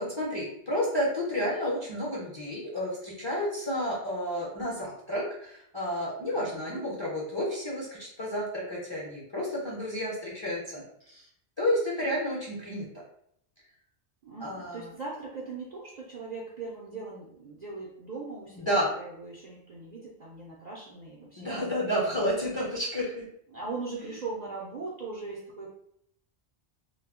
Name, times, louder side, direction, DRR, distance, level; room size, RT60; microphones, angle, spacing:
voice 1, 0.0-11.3 11.6-12.9 14.4-14.9 18.6-18.9 21.4-23.3, equal, 30° left, -5 dB, 0.5 m, -31 dB
voice 2, 6.3-7.0 14.2-21.6 21.9-22.3 23.5-25.7, right 3 dB, 55° right, -4 dB, 0.5 m, -40 dB
2.2 x 2.0 x 3.5 m, 0.70 s
omnidirectional pair, 1.2 m